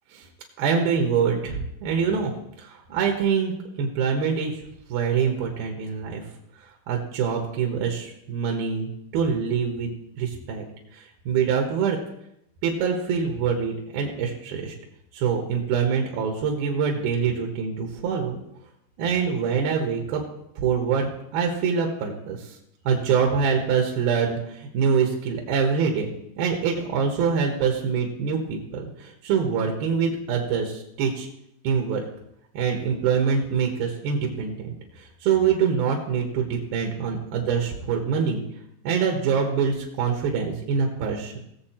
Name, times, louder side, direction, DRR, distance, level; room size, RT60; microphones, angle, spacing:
voice 1, 0.6-2.3 2.9-4.6 4.9-6.2 6.9-10.6 11.3-12.0 12.6-14.7 15.1-18.4 19.0-20.2 20.6-21.1 21.3-22.4 22.9-24.4 24.7-26.1 26.4-31.3 31.6-32.0 32.5-34.7 35.2-38.4 38.8-41.3, right 6 dB, 70° right, 2 dB, 2.6 m, -24 dB
19.0 x 7.5 x 4.4 m, 0.80 s
omnidirectional pair, 5.8 m